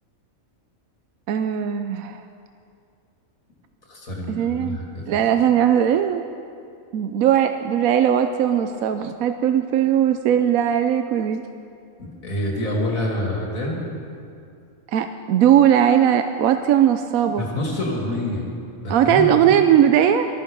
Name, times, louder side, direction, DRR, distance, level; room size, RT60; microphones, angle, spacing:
voice 1, 1.3-2.2 4.3-4.8 5.1-6.3 6.9-11.4 14.9-17.4 18.9-20.3, right 9 dB, 80° right, 8 dB, 1.0 m, -19 dB
voice 2, 3.8-5.2 12.0-13.8 17.4-18.5 18.8-19.4, left 1 dB, 75° left, -2 dB, 3.0 m, -27 dB
18.0 x 14.0 x 5.3 m, 2.5 s
omnidirectional pair, 1.5 m